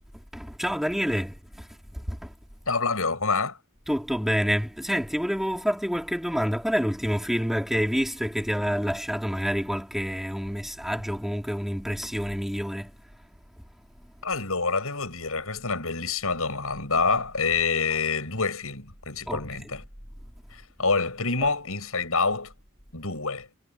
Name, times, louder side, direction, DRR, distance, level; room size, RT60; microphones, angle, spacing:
voice 1, 0.3-2.3 3.9-12.9 19.3-19.7 21.4-21.5, equal, ahead, 3.7 m, -28 dB
voice 2, 2.7-3.6 14.2-19.8 20.5-22.5 22.9-23.5, left 4 dB, 70° left, 7.0 m, -27 dB
head